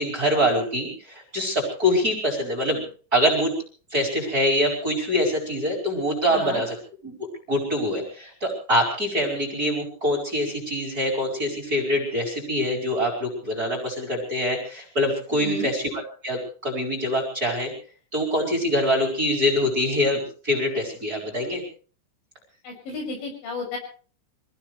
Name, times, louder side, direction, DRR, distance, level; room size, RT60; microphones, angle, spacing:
voice 1, 0.0-2.9 3.1-3.5 3.9-6.8 7.0-7.1 7.5-17.7 18.1-21.6, equal, 20° right, 1 dB, 4.6 m, -24 dB
voice 2, 6.3-6.6 15.3-15.7 22.6-23.8, left 2 dB, 65° left, 2 dB, 8.6 m, -33 dB
26.0 x 17.0 x 3.2 m, 0.40 s
omnidirectional pair, 5.9 m